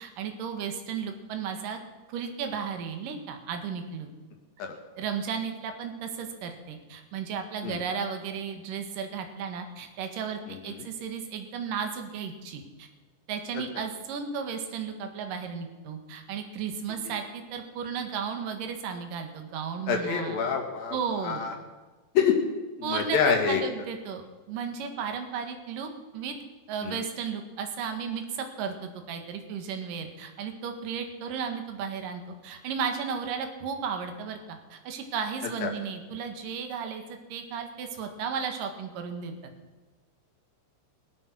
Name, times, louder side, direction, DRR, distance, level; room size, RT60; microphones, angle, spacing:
voice 1, 0.0-1.8 2.1-4.1 5.0-12.9 13.3-20.4 20.9-21.4 22.8-26.3 26.7-39.5, right 6 dB, 60° right, 6 dB, 3.0 m, -34 dB
voice 2, 10.5-10.9 19.9-21.0 21.2-21.5 22.2-22.4 22.8-23.6 26.8-27.0 35.6-35.7, left 7 dB, 60° left, 2 dB, 3.7 m, -26 dB
22.0 x 8.9 x 6.1 m, 1.3 s
omnidirectional pair, 4.9 m